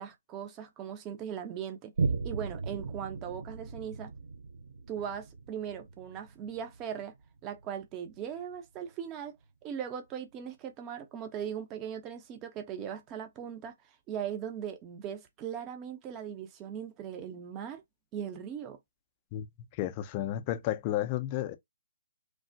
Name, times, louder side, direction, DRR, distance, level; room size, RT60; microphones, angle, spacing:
voice 1, 0.0-1.9 2.2-4.1 4.9-7.1 7.4-9.3 9.6-13.7 14.1-17.8 18.1-18.8, right 8 dB, 25° right, 0.6 m, -39 dB
Boom, 2.0-8.9 9.4-9.5, right 4 dB, 65° right, 0.7 m, -38 dB
voice 2, 19.7-21.5, left 13 dB, 30° left, 0.4 m, -32 dB
3.2 x 2.1 x 2.6 m
figure-of-eight pair, 140°, 0 cm